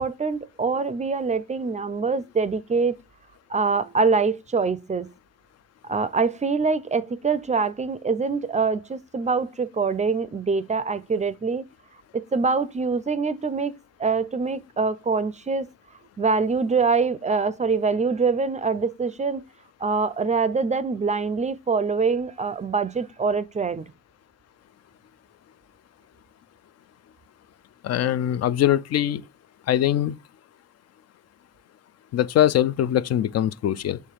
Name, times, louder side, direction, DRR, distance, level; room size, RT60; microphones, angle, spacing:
voice 1, 0.0-3.0 3.5-5.1 5.8-11.6 12.1-15.7 16.2-19.4 19.8-23.9, right 4 dB, 25° right, 0.4 m, -24 dB
voice 2, 27.8-29.2 29.7-30.2 32.1-34.0, left 11 dB, 60° left, 0.5 m, -22 dB
6.7 x 3.1 x 4.6 m
cardioid pair, 90°, 30 cm